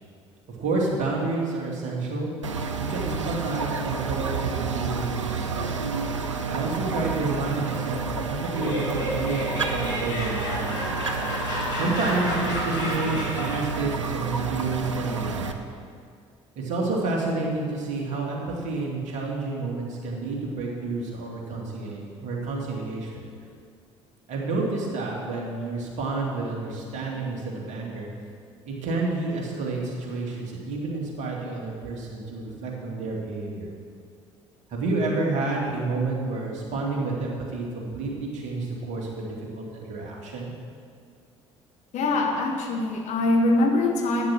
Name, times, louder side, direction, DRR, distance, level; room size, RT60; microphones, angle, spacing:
voice 1, 0.5-2.3 2.8-5.7 6.4-11.0 11.7-15.5 16.6-23.3 24.3-28.1 28.7-33.7 34.7-40.5, right 3 dB, 50° right, -2 dB, 2.7 m, -29 dB
sound 1, 2.4-15.5, right 5 dB, 80° right, 0.6 m, -30 dB
Laughter, 8.3-13.8, left 1 dB, 70° left, 3.9 m, -31 dB
voice 2, 41.9-44.3, left 2 dB, 50° left, 1 dB, 1.9 m, -23 dB
12.0 x 8.9 x 6.1 m, 2.2 s
figure-of-eight pair, 55°, 15 cm